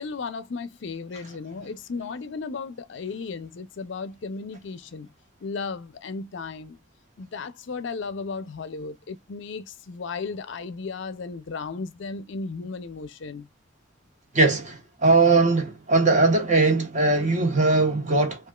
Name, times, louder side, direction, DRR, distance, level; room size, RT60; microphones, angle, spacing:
voice 1, 0.0-5.1 5.4-6.8 7.2-13.5, left 4 dB, 60° left, 0.5 m, -35 dB
voice 2, 14.3-18.5, right 3 dB, 35° right, 1.2 m, -20 dB
5.0 x 2.4 x 2.3 m
head